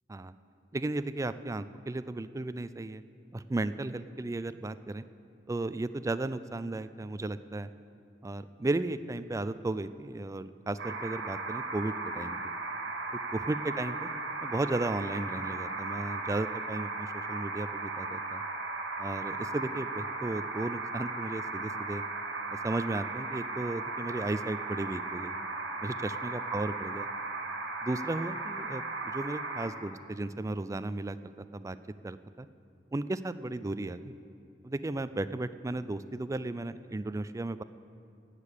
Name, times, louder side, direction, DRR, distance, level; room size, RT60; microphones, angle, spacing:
voice 1, 0.7-3.0 3.3-5.0 5.5-7.7 8.2-12.5 13.3-14.1 14.4-18.4 19.0-22.0 22.5-25.3 25.8-27.1 27.8-31.8 32.0-32.5 32.9-34.1 34.6-37.6, right 2 dB, 15° right, 13 dB, 0.4 m, -35 dB
sound 1, 10.8-29.7, right 3 dB, 70° right, 1.7 m, -36 dB
17.0 x 6.7 x 8.2 m, 2.5 s
head